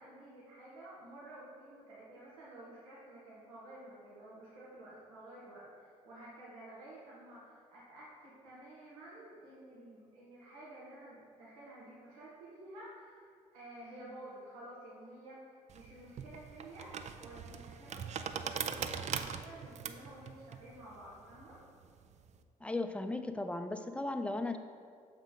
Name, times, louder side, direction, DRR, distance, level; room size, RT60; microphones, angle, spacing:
voice 1, 0.0-16.9 17.2-21.6, right 1 dB, 80° right, -7 dB, 1.7 m, -52 dB
sound 1, 15.7-22.4, right 7 dB, 40° right, 0.5 m, -41 dB
voice 2, 22.6-24.6, left 2 dB, 5° left, 8 dB, 0.6 m, -36 dB
6.4 x 5.1 x 5.3 m, 2.2 s
hypercardioid pair, 50°, 18 cm